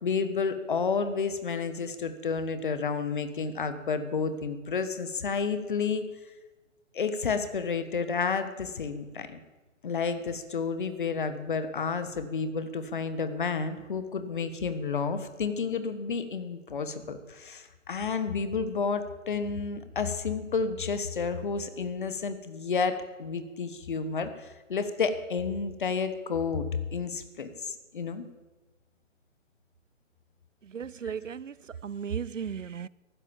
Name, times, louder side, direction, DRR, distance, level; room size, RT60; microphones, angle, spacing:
voice 1, 0.0-6.0 6.9-9.4 9.8-26.7 26.9-28.3 31.0-31.1, left 5 dB, 40° left, 1.4 m, -31 dB
voice 2, 30.7-31.5 31.8-32.9, right 7 dB, 70° right, 0.6 m, -35 dB
14.5 x 12.0 x 7.2 m
figure-of-eight pair, 140°, 39 cm